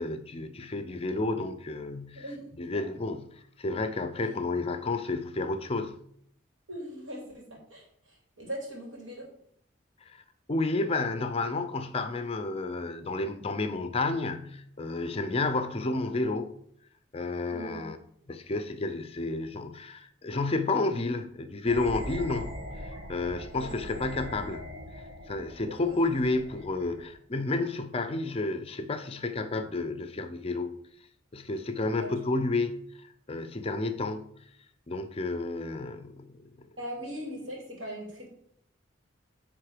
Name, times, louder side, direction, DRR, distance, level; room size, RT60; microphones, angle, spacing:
voice 1, 0.0-2.3 2.6-6.0 10.1-10.2 10.5-16.5 17.1-18.0 18.3-24.6 25.3-30.7 31.3-34.3 34.9-36.7, left 3 dB, 30° left, 0.5 m, -31 dB
voice 2, 2.1-2.5 2.7-2.8 6.7-9.3 17.5-17.9 23.5-23.7 25.7-25.9 32.0-32.1 36.8-38.3, equal, 75° right, 2.7 m, -40 dB
sound 1, 21.7-27.1, equal, 40° right, 1.4 m, -41 dB
9.6 x 3.6 x 4.9 m
head